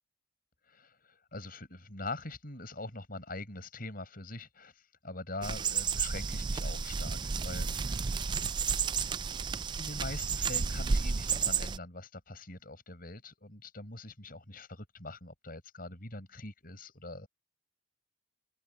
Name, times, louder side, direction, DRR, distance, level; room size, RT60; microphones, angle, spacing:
voice 1, 0.7-8.5 9.2-17.3, left 2 dB, 50° left, 7.2 m, -44 dB
sound 1, 5.4-11.8, right 5 dB, 25° right, 0.3 m, -32 dB
open air
head